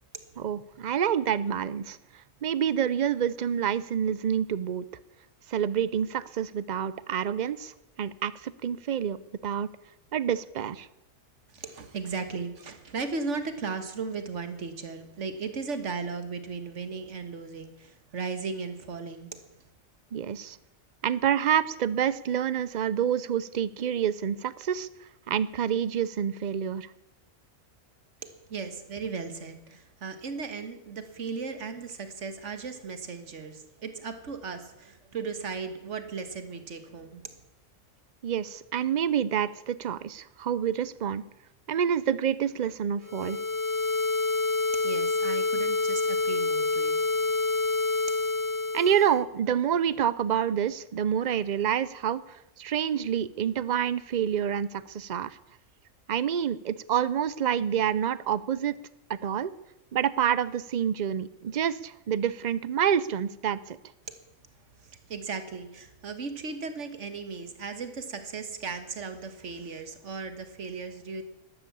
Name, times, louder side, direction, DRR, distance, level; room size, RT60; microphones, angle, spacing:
voice 1, 0.4-2.0 2.4-4.9 5.5-7.7 8.0-9.2 9.4-9.7 10.1-10.9 20.1-20.6 21.0-24.9 25.3-26.9 38.2-41.2 41.7-43.4 48.7-55.4 56.1-58.8 59.1-59.5 59.9-63.8, right 9 dB, 45° right, 17 dB, 0.6 m, -27 dB
voice 2, 11.5-19.4 28.2-37.2 44.8-46.9 47.2-47.4 64.8-71.2, right 4 dB, 65° right, 8 dB, 1.8 m, -36 dB
sound 1, 43.0-49.2, left 3 dB, 35° left, 0.3 m, -27 dB
13.0 x 12.0 x 8.4 m, 0.90 s
omnidirectional pair, 1.4 m